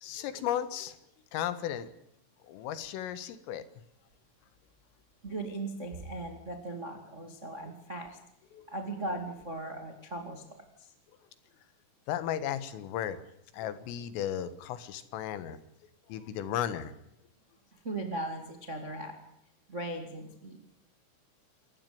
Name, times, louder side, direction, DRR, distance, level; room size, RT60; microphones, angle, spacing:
voice 1, 0.0-1.0 1.3-1.9 2.4-3.7 8.5-8.7 12.1-13.2 13.5-15.6 16.1-16.9, left 10 dB, 85° left, 13 dB, 4.1 m, -35 dB
voice 2, 5.2-8.2 8.7-10.9 17.7-19.2 19.7-20.6, right 2 dB, 40° right, 5 dB, 1.0 m, -38 dB
28.0 x 15.0 x 9.5 m, 0.77 s
omnidirectional pair, 5.7 m